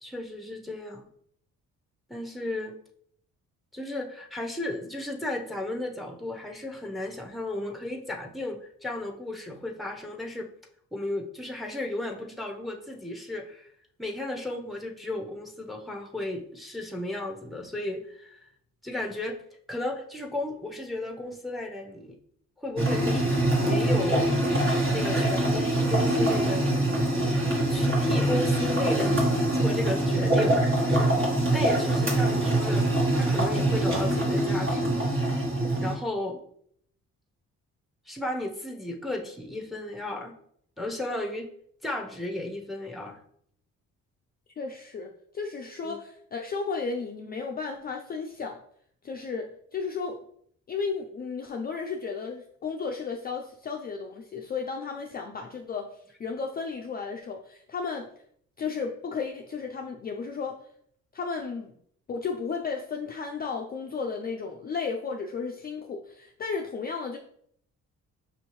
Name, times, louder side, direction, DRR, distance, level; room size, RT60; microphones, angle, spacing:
voice 1, 0.0-1.1 2.1-2.8 3.7-10.5 10.9-13.7 14.0-18.5 18.8-19.4 19.7-22.2 22.6-23.3 23.6-24.3 24.9-26.8 27.7-30.6 31.5-35.0 35.8-36.4 38.1-40.3 40.8-41.5 41.8-43.2 45.8-46.0, left 2 dB, ahead, 2 dB, 0.7 m, -34 dB
sound 1, 22.8-35.9, right 1 dB, 45° right, 1.4 m, -24 dB
voice 2, 44.6-48.6 49.0-50.2 50.7-58.1 58.6-60.6 61.1-61.7 62.1-67.2, left 5 dB, 30° left, 2 dB, 0.4 m, -34 dB
5.5 x 2.7 x 3.0 m, 0.66 s
cardioid pair, 90°, 30 cm